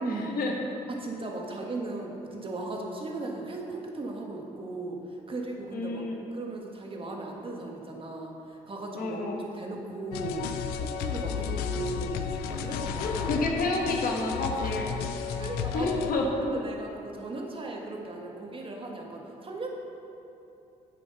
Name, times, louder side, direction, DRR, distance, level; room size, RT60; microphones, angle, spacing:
voice 1, 0.9-13.3 14.6-14.8 15.2-15.9 16.4-19.7, right 2 dB, 35° right, 0 dB, 1.6 m, -37 dB
voice 2, 5.7-6.2 8.9-9.4 13.0-14.9 15.7-16.3, left 3 dB, 65° left, 0 dB, 1.4 m, -29 dB
sound 1, 10.1-16.1, left 7 dB, 85° left, 0.5 m, -33 dB
8.1 x 6.1 x 5.5 m, 2.9 s
supercardioid pair, 65°, 16 cm